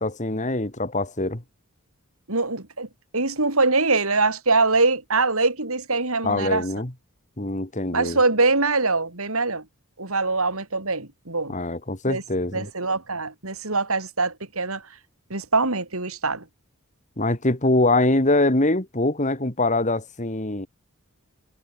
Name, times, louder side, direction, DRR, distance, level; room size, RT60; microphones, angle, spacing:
voice 1, 0.0-1.4 6.2-6.9 7.4-8.2 11.5-12.7 17.2-20.7, left 2 dB, 35° left, 2.5 m, -23 dB
voice 2, 2.3-2.9 3.1-6.7 7.9-9.6 10.0-11.6 12.1-12.2 12.5-14.8 15.3-16.4, right 3 dB, 70° right, 4.7 m, -23 dB
head